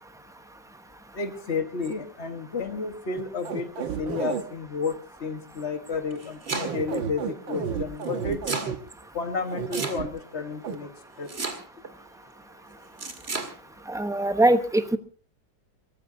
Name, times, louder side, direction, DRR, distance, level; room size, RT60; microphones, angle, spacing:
voice 1, 1.1-4.9 5.2-8.4 9.1-10.9 11.2-11.3, left 4 dB, 35° left, 7 dB, 1.7 m, -31 dB
sound 1, 3.2-4.4 6.5-8.8 9.5-10.1 10.6-10.8, right 7 dB, 85° right, 2.0 m, -31 dB
Domestic sounds home sounds, 5.9-7.0 8.0-8.7 9.7-10.3 11.3-11.9 13.0-13.5, right 3 dB, 35° right, 2.4 m, -32 dB
voice 2, 13.9-15.0, right 1 dB, 5° right, 8 dB, 0.5 m, -22 dB
23.5 x 18.5 x 2.8 m, 0.40 s
omnidirectional pair, 2.0 m